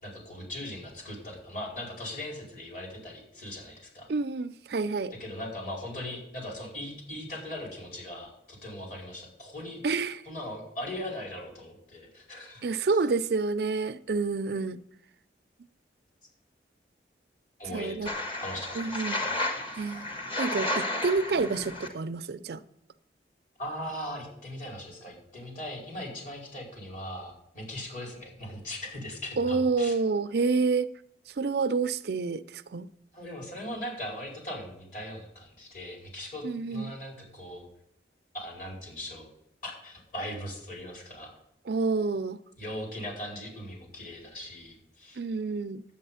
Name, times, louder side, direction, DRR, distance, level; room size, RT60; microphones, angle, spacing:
voice 1, 0.0-4.1 5.2-9.8 10.2-12.7 17.6-19.2 23.6-29.9 33.1-36.4 36.7-37.7 38.3-39.3 39.6-41.3 42.6-45.2, left 1 dB, 45° left, 4.7 m, -39 dB
voice 2, 4.1-5.1 9.8-10.2 12.6-14.8 17.7-18.1 18.8-19.2 19.7-20.1 20.4-22.6 29.4-30.9 31.3-32.9 36.4-36.9 41.7-42.4 45.2-45.8, right 4 dB, 60° right, 0.4 m, -28 dB
sound 1, 18.1-21.9, left 1 dB, 30° left, 1.4 m, -32 dB
11.0 x 8.7 x 5.6 m
head